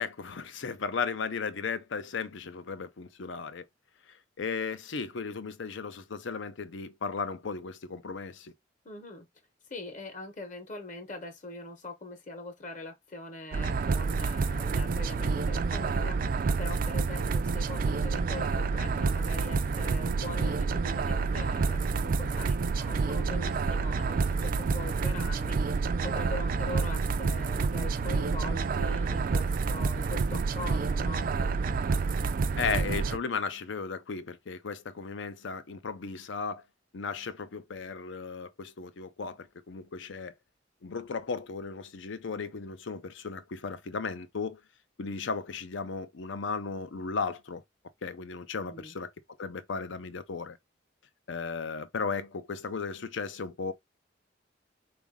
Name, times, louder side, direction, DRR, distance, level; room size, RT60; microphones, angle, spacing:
voice 1, 0.0-3.6 4.4-8.5 32.6-36.6 36.9-40.3 40.8-44.6 45.0-47.6 48.0-49.1 49.4-50.6 51.3-53.7, left 5 dB, 70° left, 0.6 m, -35 dB
voice 2, 8.8-9.3 9.7-16.2 16.6-31.3 48.6-48.9, left 2 dB, 40° left, 0.9 m, -42 dB
sound 1, 13.5-33.2, right 4 dB, 45° right, 0.3 m, -28 dB
4.0 x 2.5 x 3.5 m
head